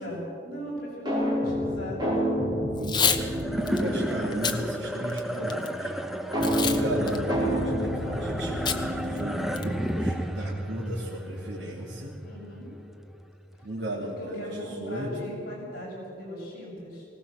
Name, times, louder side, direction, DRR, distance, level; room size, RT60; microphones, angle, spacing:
voice 1, 0.0-2.2 3.6-4.0 12.2-12.7 13.9-17.1, equal, 50° left, -5 dB, 7.3 m, -38 dB
sound 1, 1.1-4.8 6.3-9.9, equal, 20° right, 5.0 m, -29 dB
Packing tape duct tape / Tearing, 2.8-3.2 3.7-3.8 4.3-4.6 5.1-5.7 6.4-6.8 7.1-7.2 8.7-8.8 9.2-9.3 9.6-9.9, left 7 dB, 25° left, 0.9 m, -26 dB
voice 2, 2.8-5.9 6.6-12.2 13.6-15.3, right 1 dB, 60° right, -4 dB, 2.7 m, -35 dB
sound 2, 3.1-13.6, equal, ahead, 0.8 m, -33 dB
20.5 x 18.0 x 7.4 m, 2.6 s
head